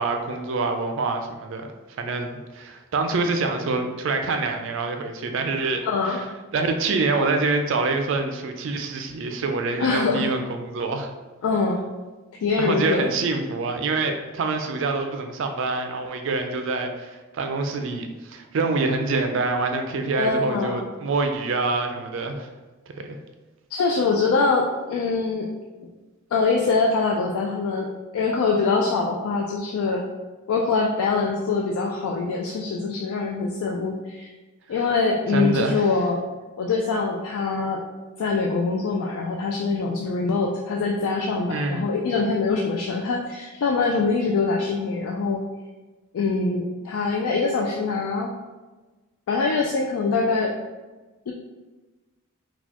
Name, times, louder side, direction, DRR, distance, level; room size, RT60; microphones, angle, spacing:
voice 1, 0.0-1.7 2.0-11.1 12.6-22.5 23.0-23.2 35.3-35.9 41.5-41.8, right 3 dB, 55° right, 5 dB, 0.3 m, -26 dB
voice 2, 5.8-6.2 9.8-10.3 11.4-11.8 12.4-13.1 20.2-20.9 23.7-25.5 26.3-30.1 30.5-34.3 34.7-36.2 36.6-37.8 38.2-45.4 46.1-48.3 49.3-50.5 51.3-51.4, left 4 dB, 80° left, 0 dB, 0.3 m, -24 dB
4.0 x 2.3 x 2.8 m, 1.2 s
head